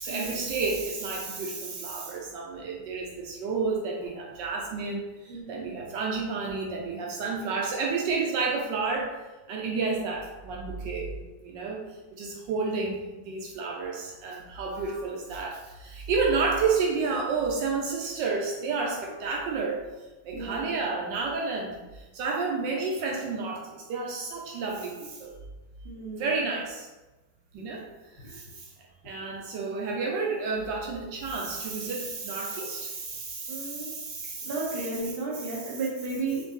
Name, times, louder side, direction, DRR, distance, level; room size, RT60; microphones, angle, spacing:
voice 1, 0.0-9.1 9.5-11.8 12.1-19.8 20.2-25.3 26.2-26.9 27.5-27.9 28.1-28.7 29.0-34.9 35.4-35.6, right 4 dB, 80° right, -1 dB, 1.3 m, -31 dB
voice 2, 5.3-5.7 20.3-20.7 25.8-26.3 33.5-34.0 34.4-36.4, right 3 dB, 35° right, -7 dB, 1.6 m, -33 dB
5.0 x 2.6 x 3.7 m, 1.1 s
omnidirectional pair, 1.9 m